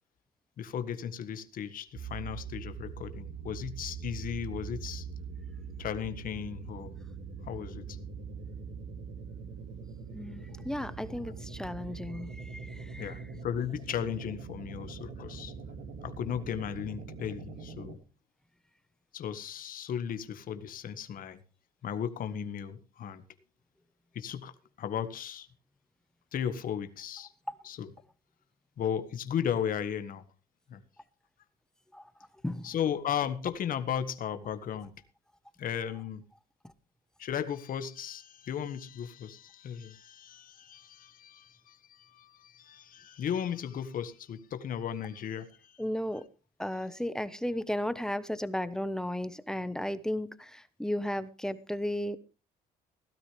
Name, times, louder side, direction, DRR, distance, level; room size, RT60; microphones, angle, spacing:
voice 1, 0.6-5.1 5.8-6.9 7.4-8.0 13.0-15.5 16.0-18.0 19.1-21.4 21.8-23.2 24.1-24.5 24.8-25.5 26.3-27.3 27.6-27.9 28.8-30.2 30.7-30.8 32.6-34.9 35.6-36.2 37.2-45.8, left 8 dB, 55° left, 1.6 m, -35 dB
sound 1, 1.9-18.0, right 5 dB, 75° right, 2.5 m, -42 dB
voice 2, 10.1-13.3 27.5-27.6 31.9-32.1 32.4-32.8 35.9-36.0 36.6-36.7 45.8-46.3 46.6-52.2, left 1 dB, 5° left, 1.1 m, -35 dB
17.0 x 12.5 x 3.3 m
cardioid pair, 110°, 17 cm